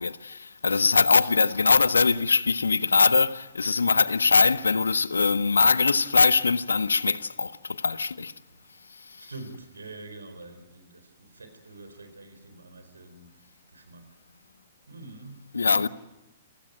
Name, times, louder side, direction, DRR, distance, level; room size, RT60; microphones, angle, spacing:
voice 1, 0.0-8.3 9.1-9.3 15.5-15.9, left 4 dB, 75° left, 0.8 m, -22 dB
voice 2, 9.2-14.2 14.9-15.9, right 2 dB, 75° right, 4.0 m, -46 dB
28.5 x 16.0 x 9.1 m
figure-of-eight pair, 110°, 0 cm